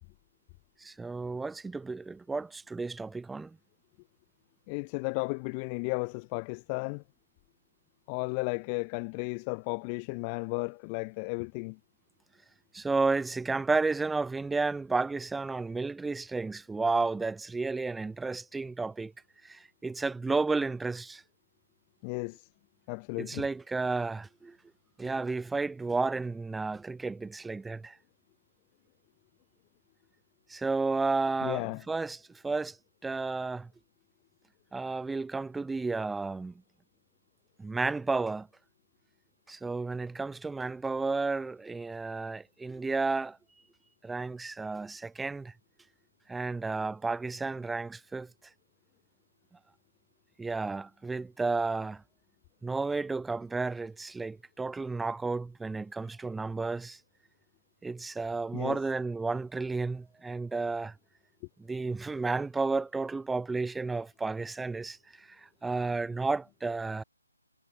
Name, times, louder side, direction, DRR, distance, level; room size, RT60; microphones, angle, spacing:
voice 1, 0.8-3.6 12.7-19.1 19.4-21.2 23.2-24.6 25.0-28.0 30.5-32.8 33.0-33.7 34.7-36.5 37.6-38.5 39.5-43.4 44.0-45.5 46.3-48.3 50.4-52.0 52.6-57.0 57.8-60.9 61.6-67.0, right 3 dB, 5° right, 1.4 m, -32 dB
voice 2, 4.7-7.0 8.1-11.8 22.0-22.5 22.9-23.4 31.4-31.8 58.5-58.8, left 36 dB, 20° left, 1.1 m, -34 dB
hypercardioid pair, 160°, 0 cm